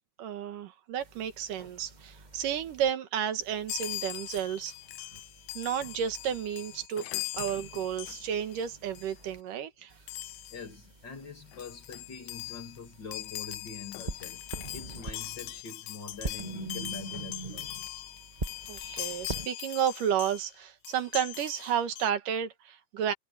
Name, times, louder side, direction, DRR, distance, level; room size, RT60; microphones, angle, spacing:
voice 1, 0.2-4.7 5.5-7.1 7.4-9.9 18.7-23.1, right 9 dB, 75° right, 3.0 m, -32 dB
sound 1, 1.0-2.9 3.4-6.9 7.3-9.4 9.9-15.6 16.1-19.5, right 3 dB, 20° right, 1.2 m, -44 dB
Chime, 3.7-8.6 8.9-9.2 10.1-10.7 11.2-11.3 11.5-20.5 20.8-22.1, left 16 dB, 75° left, 1.8 m, -41 dB
voice 2, 10.5-17.7, left 4 dB, 35° left, 2.7 m, -44 dB
omnidirectional pair, 3.8 m